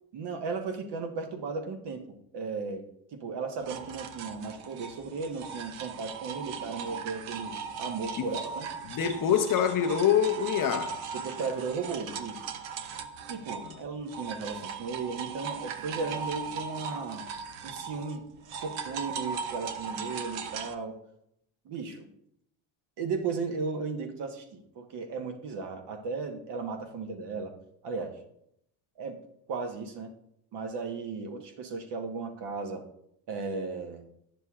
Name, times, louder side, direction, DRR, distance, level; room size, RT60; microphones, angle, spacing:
voice 1, 0.1-2.8 3.1-8.7 11.1-12.4 13.3-17.2 17.6-18.2 18.6-21.0 21.6-22.1 23.0-27.5 27.8-28.2 29.0-29.2 29.5-30.1 30.5-32.8 33.3-34.1, right 4 dB, 55° right, 1.2 m, -35 dB
sound 1, 3.6-13.8 14.1-20.7, right 6 dB, 75° right, 0.7 m, -38 dB
voice 2, 8.8-11.0 13.6-13.7, left 8 dB, 45° left, 0.7 m, -25 dB
9.7 x 6.7 x 2.4 m
supercardioid pair, 90°, 48 cm